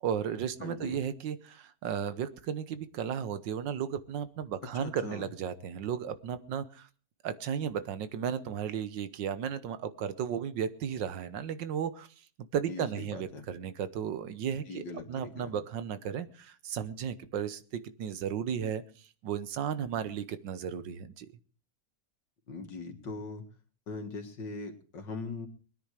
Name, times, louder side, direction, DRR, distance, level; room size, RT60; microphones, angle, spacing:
voice 1, 0.0-6.9 7.2-12.1 12.5-21.3, right 8 dB, 85° right, 13 dB, 1.7 m, -34 dB
voice 2, 0.6-1.0 4.7-5.3 12.7-13.5 14.7-15.6 22.5-23.4 23.9-25.5, left 3 dB, 80° left, 4 dB, 2.6 m, -41 dB
21.5 x 9.9 x 4.9 m, 0.38 s
omnidirectional pair, 1.9 m